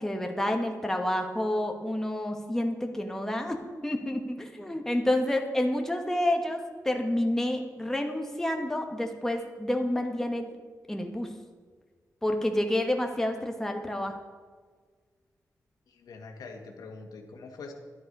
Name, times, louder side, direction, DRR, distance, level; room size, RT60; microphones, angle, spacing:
voice 1, 0.0-3.6 3.8-10.5 10.9-11.3 12.2-14.2, left 1 dB, 5° left, 3 dB, 1.2 m, -29 dB
voice 2, 15.9-17.7, left 4 dB, 90° left, 3 dB, 1.7 m, -44 dB
11.5 x 11.0 x 5.3 m, 1.5 s
wide cardioid pair, 140°, 6 cm